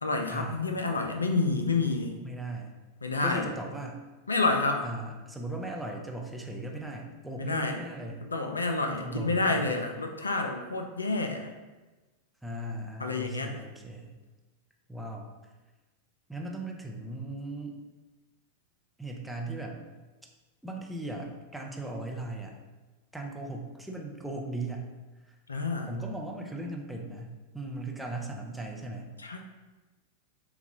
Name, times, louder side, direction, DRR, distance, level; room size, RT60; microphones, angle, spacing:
voice 1, 0.0-2.1 3.0-3.5 4.3-4.9 7.4-7.8 8.2-11.5 13.0-13.6 25.5-25.9 29.2-29.4, left 3 dB, 75° left, 4 dB, 0.4 m, -29 dB
voice 2, 2.2-2.7 3.2-4.0 4.8-8.2 8.9-9.8 12.4-14.2 14.9-15.3 16.3-17.8 19.0-19.8 20.6-22.6 23.1-24.9 25.3-25.4 25.9-29.1, right 2 dB, 5° right, 0 dB, 0.6 m, -38 dB
6.7 x 2.3 x 2.8 m, 1.2 s
figure-of-eight pair, 90°, 0 cm